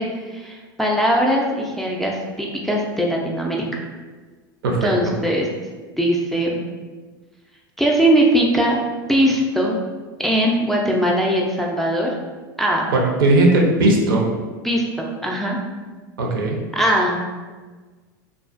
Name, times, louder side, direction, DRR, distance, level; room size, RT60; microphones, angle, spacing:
voice 1, 0.0-3.8 4.8-5.5 6.0-6.6 7.8-8.8 9.1-9.8 10.2-12.1 12.6-12.9 14.6-15.6 16.7-17.2, right 1 dB, ahead, -2 dB, 0.4 m, -20 dB
voice 2, 12.9-14.2 16.2-16.6, right 2 dB, 80° right, 0 dB, 0.5 m, -17 dB
2.4 x 2.3 x 2.4 m, 1.4 s
hypercardioid pair, 100°, 12 cm